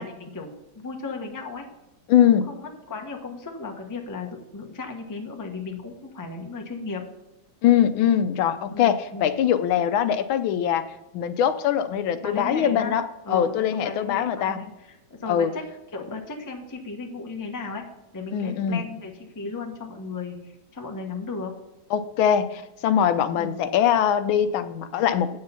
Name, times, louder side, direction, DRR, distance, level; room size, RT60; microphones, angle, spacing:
voice 1, 0.0-1.7 2.2-7.0 8.7-9.3 12.2-13.0 13.3-15.6 15.9-17.8 18.1-21.5 23.3-23.6, left 4 dB, 15° left, 3 dB, 0.7 m, -35 dB
voice 2, 2.1-2.5 7.6-10.8 11.1-13.0 13.3-14.6 15.3-15.5 18.3-18.9 21.9-25.4, left 9 dB, 80° left, 11 dB, 1.4 m, -22 dB
9.0 x 6.7 x 5.6 m, 0.92 s
omnidirectional pair, 2.2 m